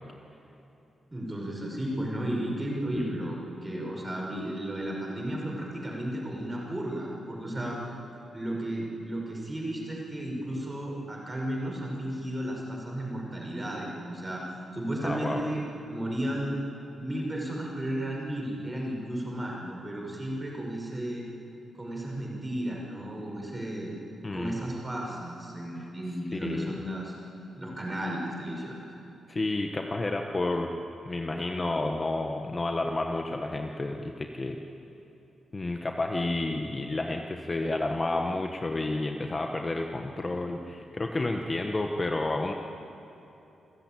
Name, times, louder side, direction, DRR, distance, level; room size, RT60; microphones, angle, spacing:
voice 1, 1.1-7.8 8.3-14.4 14.7-15.6 15.9-16.6 17.0-21.2 21.8-23.9 24.3-27.1 27.6-28.8, right 1 dB, 15° right, -1 dB, 5.9 m, -34 dB
voice 2, 15.0-15.4 24.2-24.5 26.3-26.8 29.3-30.7 31.0-34.6 35.5-42.5, left 2 dB, 25° left, 3 dB, 1.2 m, -30 dB
28.0 x 15.0 x 9.0 m, 2.9 s
wide cardioid pair, 130°, 0 cm